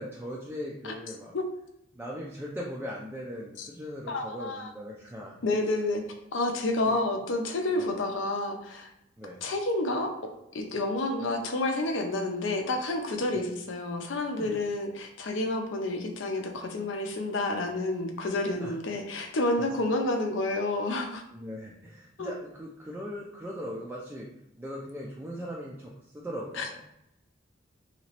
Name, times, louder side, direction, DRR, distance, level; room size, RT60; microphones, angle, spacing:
voice 1, 0.0-1.4 1.9-5.4 6.8-7.0 7.7-7.9 9.2-9.4 13.3-13.4 14.4-14.5 18.6-18.7 21.3-24.3 24.6-26.8, equal, 10° right, -4 dB, 0.4 m, -39 dB
voice 2, 4.1-4.7 5.4-6.0 6.3-8.9 9.4-21.2 22.2-22.3 26.5-26.6, left 2 dB, 75° left, 4 dB, 0.6 m, -29 dB
3.0 x 2.9 x 2.9 m, 0.80 s
head